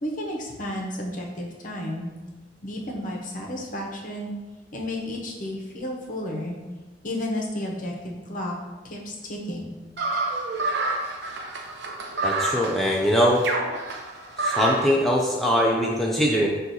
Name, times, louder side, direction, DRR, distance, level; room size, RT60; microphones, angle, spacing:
voice 1, 0.0-2.1 2.6-4.3 4.7-6.6 7.0-8.5 8.8-9.7, left 1 dB, 45° left, 0 dB, 0.7 m, -32 dB
sound 1, 10.0-15.0, right 2 dB, 65° right, 0.6 m, -28 dB
voice 2, 12.2-13.4 14.4-16.5, equal, ahead, -3 dB, 0.3 m, -22 dB
6.0 x 2.4 x 2.6 m, 1.2 s
head